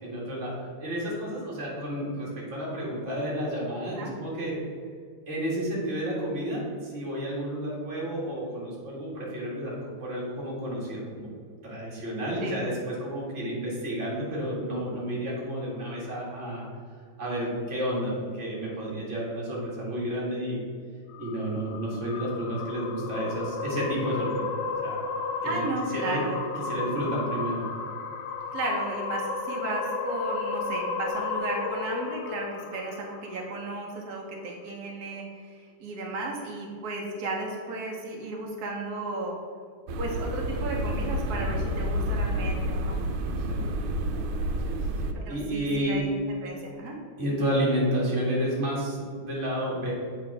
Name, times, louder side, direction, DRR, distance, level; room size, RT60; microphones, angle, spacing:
voice 1, 0.0-4.6 5.3-11.3 11.6-16.6 17.2-20.6 21.2-24.5 24.8-25.0 25.4-25.7 25.9-26.2 26.6-27.6 43.5-43.7 44.6-46.0 47.2-49.9, equal, 35° right, -5 dB, 2.0 m, -31 dB
sound 1, 21.1-33.6, left 4 dB, 70° left, 1.1 m, -33 dB
voice 2, 25.4-26.4 28.5-39.4 40.0-43.0 45.1-46.1 46.4-47.0, right 2 dB, 55° right, -1 dB, 1.2 m, -34 dB
sound 2, 39.9-45.1, equal, 85° right, 1.6 m, -29 dB
8.1 x 3.7 x 4.8 m, 2.1 s
omnidirectional pair, 2.4 m